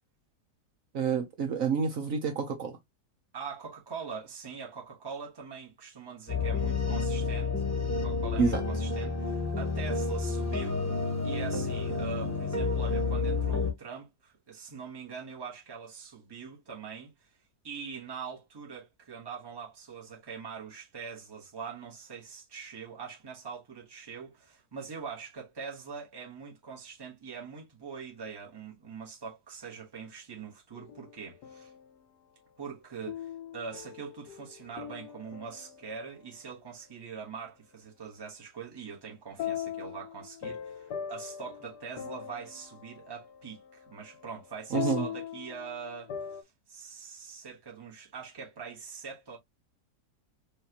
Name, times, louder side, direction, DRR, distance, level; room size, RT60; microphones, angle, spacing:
voice 1, 0.9-2.8 8.4-8.6 44.7-45.1, right 5 dB, 60° right, 1.2 m, -28 dB
voice 2, 3.3-10.9 11.2-17.3 17.6-31.7 32.6-46.4 46.7-49.4, right 6 dB, 15° right, 1.1 m, -43 dB
sound 1, 6.3-13.7, left 4 dB, 15° left, 0.8 m, -30 dB
sound 2, 30.7-32.0 33.1-36.3 39.4-46.4, left 9 dB, 85° left, 1.3 m, -40 dB
5.1 x 2.7 x 2.9 m
omnidirectional pair, 1.7 m